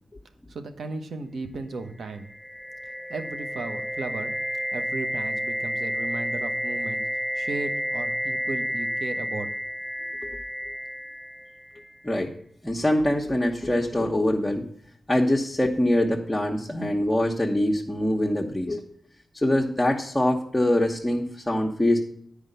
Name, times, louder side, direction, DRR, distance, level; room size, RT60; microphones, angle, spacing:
voice 1, 0.5-2.3 3.1-4.3 4.7-7.0 7.3-9.5, right 3 dB, 75° right, 7 dB, 1.1 m, -35 dB
sound 1, 2.0-11.9, equal, 5° right, 0.7 m, -31 dB
voice 2, 12.6-14.6 15.1-18.9 19.3-22.0, left 1 dB, 15° left, -2 dB, 1.2 m, -24 dB
9.5 x 5.0 x 6.7 m, 0.66 s
cardioid pair, 65°, 0 cm